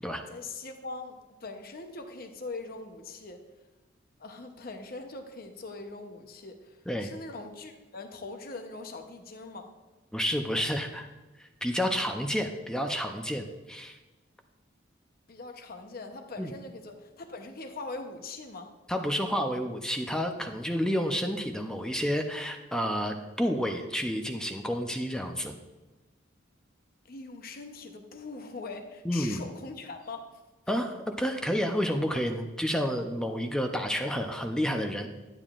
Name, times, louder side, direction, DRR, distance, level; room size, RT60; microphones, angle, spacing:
voice 1, 0.3-3.4 4.2-9.7 15.3-18.7 27.0-30.3, left 3 dB, 50° left, 5 dB, 0.8 m, -42 dB
voice 2, 10.1-11.1 11.4-14.0 16.4-16.5 18.9-25.5 29.0-29.4 30.7-35.1, equal, 5° left, 4 dB, 0.5 m, -30 dB
11.5 x 8.9 x 2.5 m, 1.1 s
head